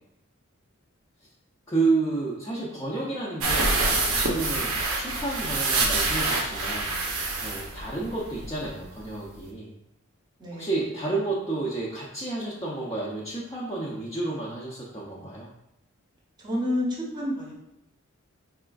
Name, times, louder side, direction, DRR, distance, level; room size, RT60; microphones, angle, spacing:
voice 1, 1.7-6.9 7.4-9.7 10.5-15.5, right 3 dB, 15° left, -7 dB, 0.4 m, -30 dB
sound 1, 3.4-8.7 9.0-9.1 9.4-9.5, right 3 dB, 80° right, 0.6 m, -26 dB
voice 2, 10.4-10.8 16.4-17.5, left 1 dB, 20° right, -4 dB, 0.7 m, -29 dB
4.2 x 2.3 x 2.3 m, 0.85 s
head